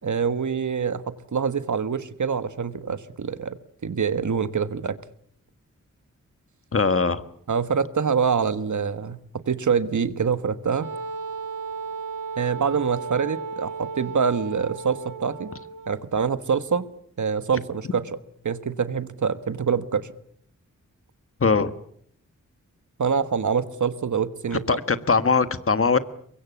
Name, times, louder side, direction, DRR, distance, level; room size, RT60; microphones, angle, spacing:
voice 1, 0.0-3.6 3.8-5.0 7.5-10.9 12.4-15.5 15.9-16.9 17.2-18.0 18.4-20.1 23.0-24.8, right 6 dB, 70° right, 13 dB, 1.4 m, -25 dB
voice 2, 6.7-7.2 21.4-21.7 24.7-26.0, left 4 dB, 45° left, 12 dB, 1.4 m, -21 dB
Wind instrument woodwind instrument, 10.8-16.0, right 5 dB, 85° right, 1.7 m, -34 dB
24.5 x 22.0 x 8.3 m, 0.65 s
wide cardioid pair, 95°, 31 cm